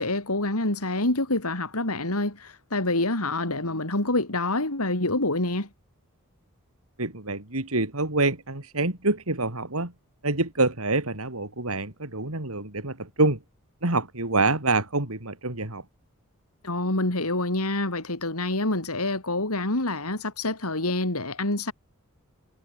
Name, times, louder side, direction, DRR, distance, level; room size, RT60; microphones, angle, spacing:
voice 1, 0.0-5.7 16.6-21.7, left 2 dB, 85° left, 4.4 m, -27 dB
voice 2, 7.0-9.9 10.2-13.4 13.8-15.8, right 2 dB, 75° right, 3.7 m, -26 dB
head